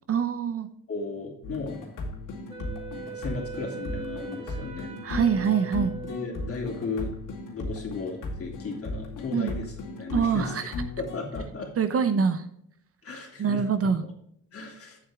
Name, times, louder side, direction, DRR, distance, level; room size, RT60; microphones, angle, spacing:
voice 1, 0.1-0.7 5.0-5.9 9.3-9.5 10.1-10.7 11.8-12.4 13.4-14.0, right 6 dB, 50° right, 10 dB, 0.9 m, -24 dB
voice 2, 0.9-1.8 3.1-5.0 6.1-7.1 7.5-10.7 11.0-11.7 13.0-13.6 14.5-15.0, left 3 dB, 45° left, 0 dB, 3.0 m, -35 dB
sound 1, 1.4-11.4, left 2 dB, 90° left, 2.3 m, -36 dB
Wind instrument woodwind instrument, 2.5-6.8, right 6 dB, 20° right, 1.6 m, -41 dB
8.3 x 8.0 x 3.7 m, 0.71 s
cardioid pair, 105°, 31 cm